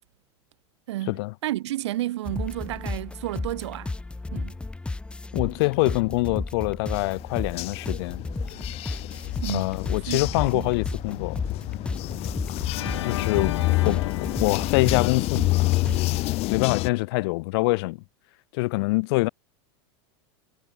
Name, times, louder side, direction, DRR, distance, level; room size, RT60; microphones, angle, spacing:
voice 1, 0.9-4.0 4.3-4.6 9.4-9.7 10.1-10.7, right 15 dB, 80° right, 1.6 m, -31 dB
sound 1, 2.3-16.2, left 2 dB, 5° left, 1.0 m, -34 dB
voice 2, 5.3-8.3 9.5-11.4 13.0-13.6 13.8-14.0 14.4-15.5 16.5-18.0 18.5-19.3, left 24 dB, 65° left, 2.6 m, -25 dB
sound 2, 7.0-16.9, left 19 dB, 45° left, 3.0 m, -28 dB
Organ, 12.7-15.9, left 13 dB, 85° left, 3.2 m, -34 dB
supercardioid pair, 130°, 14 cm